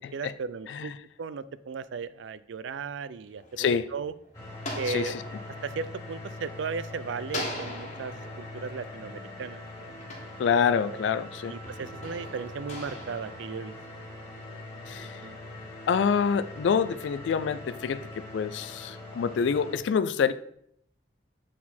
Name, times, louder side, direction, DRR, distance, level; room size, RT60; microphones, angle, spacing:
voice 1, 0.1-4.1 4.8-5.2 5.6-9.9 10.8-11.0 11.5-13.8 15.0-15.4, right 5 dB, 75° right, 15 dB, 0.4 m, -36 dB
sound 1, 3.1-6.8 7.3-11.0 11.6-14.3, left 1 dB, 40° left, 1.4 m, -42 dB
voice 2, 3.6-3.9 4.9-5.1 10.4-11.5 14.9-15.2 15.9-20.3, left 6 dB, 70° left, 13 dB, 0.3 m, -27 dB
sound 2, 4.3-19.8, left 2 dB, 15° left, 1.9 m, -42 dB
7.4 x 4.2 x 4.3 m, 0.69 s
head